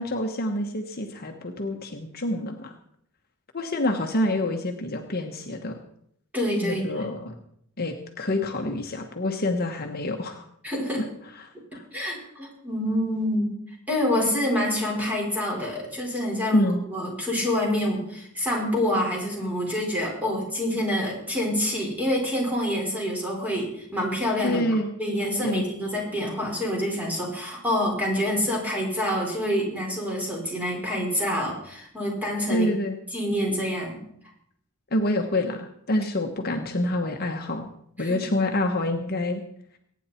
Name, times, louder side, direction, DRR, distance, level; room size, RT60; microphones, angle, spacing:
voice 1, 0.0-2.7 3.5-5.8 6.6-7.3 7.8-10.4 11.4-11.8 16.5-16.8 24.4-24.9 25.4-25.6 32.5-33.0 34.9-37.7 38.0-39.4, left 1 dB, 45° left, 4 dB, 1.2 m, -27 dB
voice 2, 6.3-7.0 10.6-11.1 11.9-13.5 13.9-24.6 25.0-32.7 33.1-34.0 38.0-38.2, equal, 5° right, -2 dB, 4.9 m, -27 dB
22.0 x 9.5 x 4.4 m, 0.71 s
head